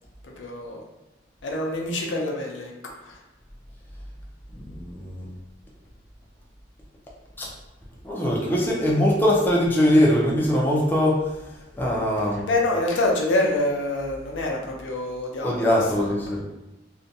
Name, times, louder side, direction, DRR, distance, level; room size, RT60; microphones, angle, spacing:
voice 1, 0.2-0.8 1.4-2.7 3.0-3.2 12.5-16.4, left 2 dB, 80° left, -1 dB, 0.5 m, -26 dB
voice 2, 4.5-5.3 7.4-7.5 8.0-12.5 15.4-16.4, left 1 dB, 10° left, -4 dB, 0.4 m, -22 dB
2.5 x 2.1 x 2.6 m, 0.97 s
head